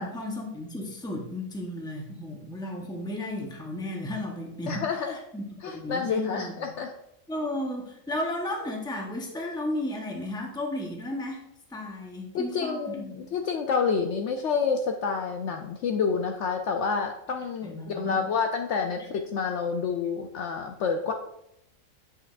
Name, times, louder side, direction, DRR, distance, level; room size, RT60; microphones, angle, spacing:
voice 1, 0.0-6.7 7.3-13.3 17.6-18.2, left 1 dB, 5° left, 1 dB, 0.8 m, -34 dB
voice 2, 4.7-5.2 5.6-6.9 12.3-21.1, left 5 dB, 65° left, 4 dB, 0.8 m, -28 dB
8.1 x 5.8 x 2.5 m, 0.80 s
omnidirectional pair, 1.4 m